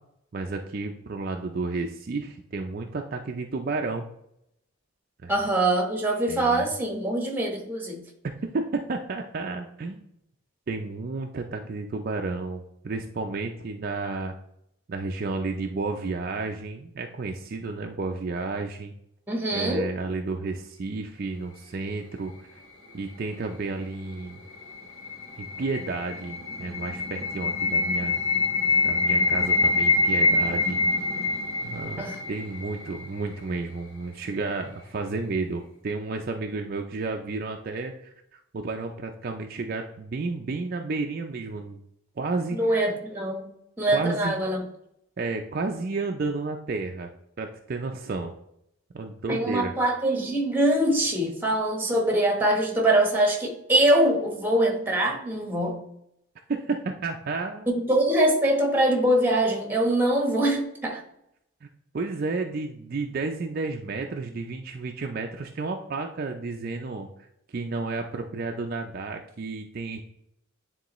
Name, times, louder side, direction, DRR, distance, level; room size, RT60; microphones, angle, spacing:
voice 1, 0.3-4.1 5.2-5.3 6.3-6.7 8.5-10.0 10.7-14.4 14.9-18.9 19.5-22.6 22.9-24.4 25.4-28.2 28.8-30.8 31.6-41.8 42.2-42.7 43.9-44.4 45.2-47.1 47.4-48.3 48.9-49.7 56.5-57.7 61.6-61.7 61.9-67.1 67.5-70.0, right 3 dB, 45° right, 3 dB, 0.4 m, -32 dB
voice 2, 5.3-8.0 19.3-19.9 32.0-32.2 42.6-43.4 43.8-44.6 49.3-55.8 57.7-61.0, right 1 dB, 10° right, 2 dB, 1.1 m, -23 dB
sound 1, 24.3-33.3, left 3 dB, 65° left, 1.3 m, -25 dB
9.3 x 3.7 x 3.0 m, 0.77 s
head